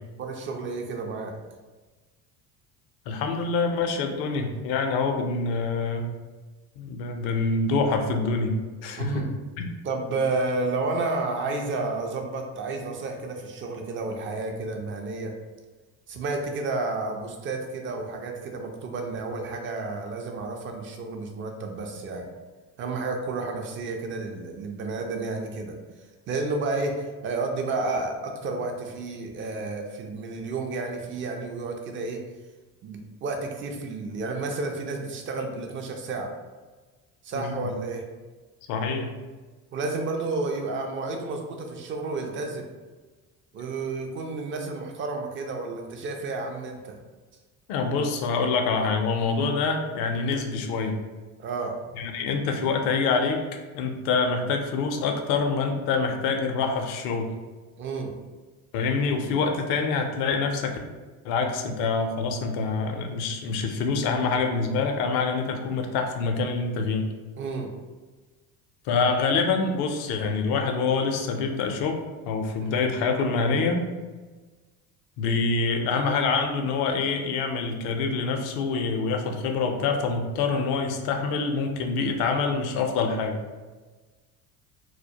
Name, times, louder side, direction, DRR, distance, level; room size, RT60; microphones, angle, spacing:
voice 1, 0.2-1.3 9.0-9.3 9.8-15.3 16.1-22.3 22.8-25.8 26.3-32.2 32.8-36.3 37.2-38.0 39.7-42.7 43.5-47.0 51.4-51.8 57.8-58.1 67.4-67.7 72.6-72.8, right 3 dB, 30° right, 3 dB, 0.4 m, -31 dB
voice 2, 3.1-6.1 6.8-9.2 9.6-9.7 37.3-37.6 38.7-39.1 47.7-51.0 51.9-53.4 53.7-57.3 58.7-60.8 61.2-67.0 68.9-73.8 75.2-83.4, left 4 dB, 55° left, 4 dB, 0.5 m, -26 dB
2.2 x 2.1 x 2.7 m, 1.3 s
hypercardioid pair, 65°, 45 cm